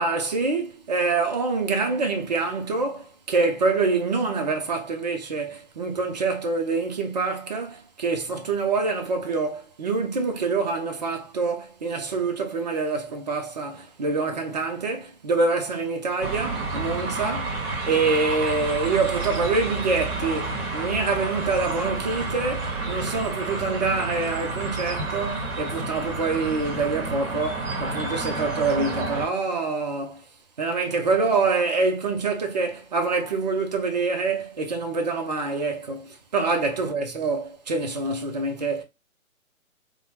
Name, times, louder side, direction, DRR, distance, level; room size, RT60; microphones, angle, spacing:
voice 1, 0.0-30.2 30.6-38.8, right 4 dB, 30° right, 0.4 m, -26 dB
sound 1, 16.2-29.3, right 3 dB, 45° right, 1.1 m, -30 dB
3.0 x 2.0 x 3.0 m
figure-of-eight pair, 140°, 42 cm